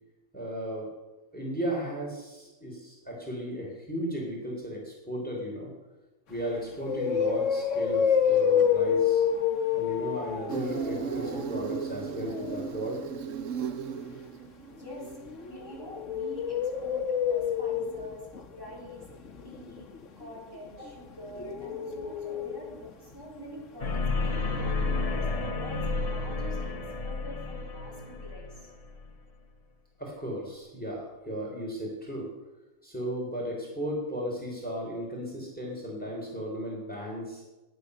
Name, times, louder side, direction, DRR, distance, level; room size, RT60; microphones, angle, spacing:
voice 1, 0.3-0.9 1.3-5.7 6.3-9.2 9.7-13.0 20.8-20.9 30.0-32.3 32.8-37.4, equal, 5° left, -1 dB, 3.6 m, -35 dB
sound 1, 6.3-6.4 6.8-12.7 14.8-22.9 23.1-23.2 23.6-23.7, left 7 dB, 75° left, 1.5 m, -29 dB
Insect, 10.5-15.5, right 7 dB, 85° right, 1.2 m, -36 dB
voice 2, 14.8-15.1 15.4-19.0 19.4-19.9 20.2-26.8 27.0-28.7, equal, 20° right, -5 dB, 3.9 m, -45 dB
sound 2, 23.8-29.1, left 3 dB, 30° left, 1.0 m, -31 dB
15.0 x 10.0 x 6.7 m, 1.1 s
omnidirectional pair, 1.3 m